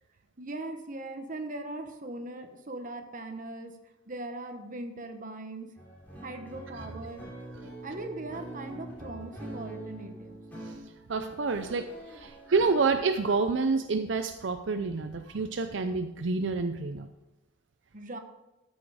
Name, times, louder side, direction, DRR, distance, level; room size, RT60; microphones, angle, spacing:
voice 1, 0.4-3.7 4.1-5.7 6.2-7.2 7.6-10.4 17.9-18.2, right 2 dB, 45° right, 5 dB, 1.1 m, -40 dB
sound 1, 5.8-12.9, right 1 dB, 10° left, 3.2 m, -44 dB
voice 2, 11.1-17.1, right 4 dB, 75° right, 8 dB, 0.6 m, -28 dB
13.5 x 6.4 x 4.9 m, 1.0 s
head